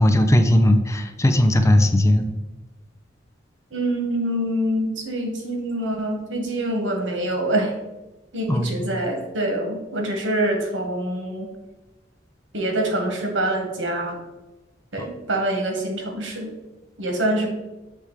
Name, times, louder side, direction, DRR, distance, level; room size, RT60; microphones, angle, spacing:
voice 1, 0.0-2.3 8.5-8.7, left 1 dB, 15° left, 7 dB, 0.4 m, -17 dB
voice 2, 3.7-7.7 8.3-11.5 12.5-14.2 14.9-16.5 17.0-17.5, right 1 dB, 85° right, 2 dB, 1.4 m, -25 dB
7.2 x 3.4 x 4.7 m, 1.1 s
head